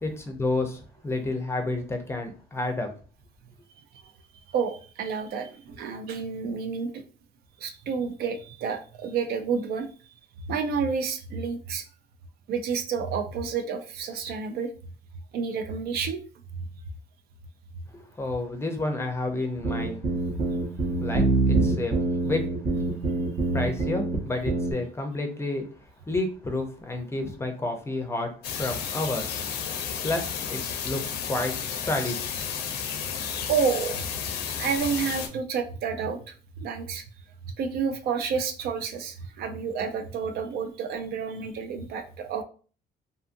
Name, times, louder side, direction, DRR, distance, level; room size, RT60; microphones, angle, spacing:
voice 1, 0.0-2.9 17.9-20.0 21.0-22.4 23.5-25.7 26.1-28.3 28.6-29.3 30.0-30.2 30.5-31.0 31.3-32.3, left 2 dB, 15° left, 4 dB, 0.5 m, -30 dB
voice 2, 4.5-7.0 7.6-9.9 10.5-11.8 12.5-14.7 15.3-16.2 33.5-34.0 34.6-37.0 37.6-42.4, right 6 dB, 65° right, 7 dB, 0.4 m, -30 dB
sound 1, 19.6-24.2 24.5-24.7, right 3 dB, 50° right, 0.9 m, -25 dB
sound 2, 28.4-35.3, left 7 dB, 75° left, 0.5 m, -32 dB
2.6 x 2.4 x 2.5 m, 0.39 s
cardioid pair, 110°, 17 cm